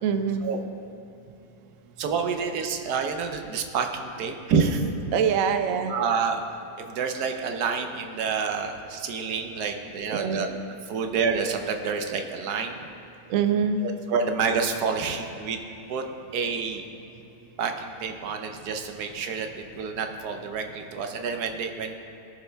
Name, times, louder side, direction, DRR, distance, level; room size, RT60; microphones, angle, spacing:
voice 1, 0.0-0.4 5.1-5.9 10.1-10.5 13.3-13.8, right 7 dB, 65° right, 8 dB, 1.0 m, -24 dB
voice 2, 2.0-4.9 5.9-6.4 6.8-10.5 10.9-12.8 13.8-15.6 15.9-16.0 16.3-16.8 17.6-21.9, right 5 dB, 90° right, 5 dB, 1.4 m, -28 dB
20.0 x 6.9 x 3.4 m, 2.9 s
omnidirectional pair, 1.6 m